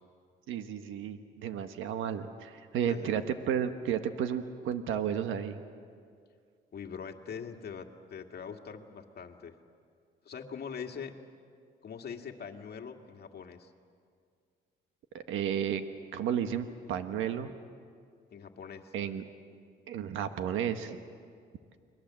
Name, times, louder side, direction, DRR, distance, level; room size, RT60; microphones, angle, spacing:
voice 1, 0.5-5.6 15.1-15.8 16.1-17.5 18.9-19.2 19.9-21.0, right 9 dB, 85° right, 8 dB, 1.4 m, -32 dB
voice 2, 6.7-9.6 10.3-11.1 11.8-13.7 18.3-18.9, left 6 dB, 55° left, 3 dB, 2.1 m, -42 dB
30.0 x 21.5 x 7.5 m, 2.2 s
cardioid pair, 90°, 20 cm